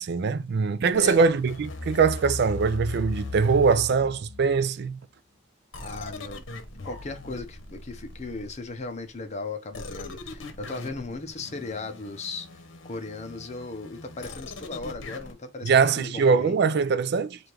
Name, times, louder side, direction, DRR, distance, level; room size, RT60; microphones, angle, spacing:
voice 1, 0.0-5.0 15.6-17.4, right 5 dB, 60° right, 0.4 m, -22 dB
sound 1, 0.9-4.6 5.7-8.8 9.7-15.3, left 3 dB, 80° left, 0.9 m, -39 dB
voice 2, 5.8-6.4 6.8-16.6, left 3 dB, 35° left, 0.8 m, -37 dB
3.4 x 2.6 x 4.6 m
head